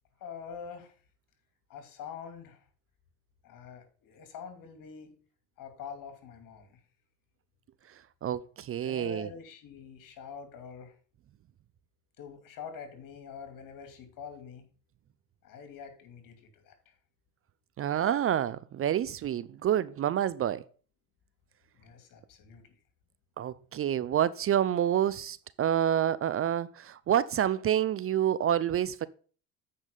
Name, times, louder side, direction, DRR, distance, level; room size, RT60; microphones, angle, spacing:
voice 1, 0.2-0.9 1.7-2.6 3.4-5.2 5.6-6.8 8.8-10.9 12.2-14.6 15.4-16.9 21.8-22.7, left 6 dB, 60° left, 2.7 m, -45 dB
voice 2, 8.2-9.3 17.8-20.6 23.4-29.1, right 10 dB, 40° right, 0.5 m, -28 dB
8.3 x 5.4 x 5.3 m
supercardioid pair, 80°, 37 cm